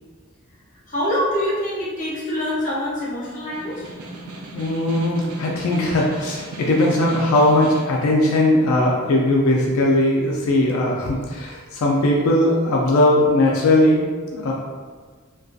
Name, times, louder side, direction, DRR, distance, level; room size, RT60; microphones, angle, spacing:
voice 1, 0.9-3.9, left 1 dB, 35° left, -7 dB, 0.6 m, -25 dB
Snare drum, 3.5-8.0, right 2 dB, 80° right, 0.4 m, -36 dB
voice 2, 4.5-14.0 14.3-14.5, left 1 dB, 75° left, -2 dB, 0.3 m, -19 dB
2.3 x 2.2 x 2.5 m, 1.5 s
head